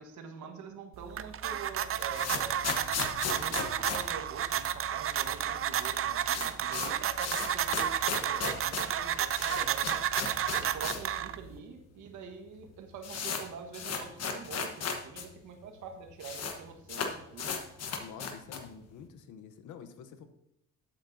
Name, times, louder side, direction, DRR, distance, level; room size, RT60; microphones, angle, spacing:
voice 1, 0.0-2.7 3.3-10.0 10.5-17.6, right 5 dB, 75° right, 4 dB, 1.5 m, -45 dB
sound 1, 0.9-11.6, right 9 dB, 45° right, 0.5 m, -32 dB
sound 2, 1.7-5.0 5.2-5.3 5.6-5.7 6.0-11.1 11.4-11.5 12.2-12.3 12.6-15.3 15.5-15.6 15.8-16.6 16.9-18.8, left 6 dB, 55° left, 1.2 m, -36 dB
voice 2, 18.0-20.3, left 7 dB, 80° left, 10 dB, 0.9 m, -48 dB
11.5 x 8.6 x 2.7 m, 0.80 s
cardioid pair, 90°, 30 cm